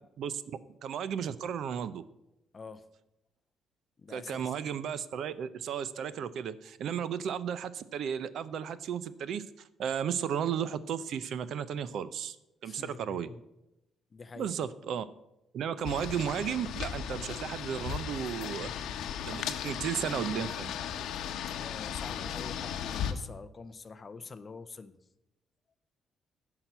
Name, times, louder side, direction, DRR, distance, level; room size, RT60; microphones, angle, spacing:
voice 1, 0.8-2.0 4.1-9.4 9.8-12.4 12.6-13.3 14.4-15.1 15.5-18.9 19.2-20.7, right 8 dB, 60° right, 15 dB, 0.5 m, -34 dB
voice 2, 2.5-2.8 4.0-4.5 12.6-13.4 14.1-14.5 21.5-25.0, left 4 dB, 25° left, 13 dB, 0.5 m, -46 dB
sound 1, 15.8-23.1, left 9 dB, 75° left, 0.8 m, -36 dB
10.5 x 5.8 x 8.0 m, 0.88 s
cardioid pair, 170°, 0 cm